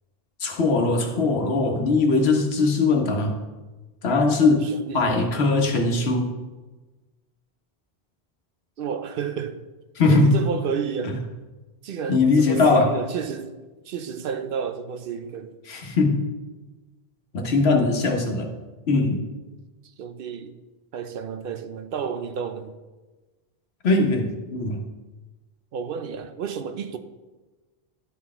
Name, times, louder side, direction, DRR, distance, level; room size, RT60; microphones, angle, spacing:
voice 1, 0.4-3.4 4.0-6.3 10.0-10.3 11.0-11.1 12.1-12.9 15.7-16.3 17.3-18.5 18.9-19.2 23.8-24.8, left 3 dB, 85° left, 1.3 m, -20 dB
voice 2, 4.6-5.2 8.8-9.6 10.1-11.2 11.8-13.6 13.8-15.6 19.8-20.6 20.9-22.8 25.7-27.0, right 7 dB, 65° right, 0.7 m, -31 dB
11.0 x 4.1 x 4.3 m
omnidirectional pair, 1.0 m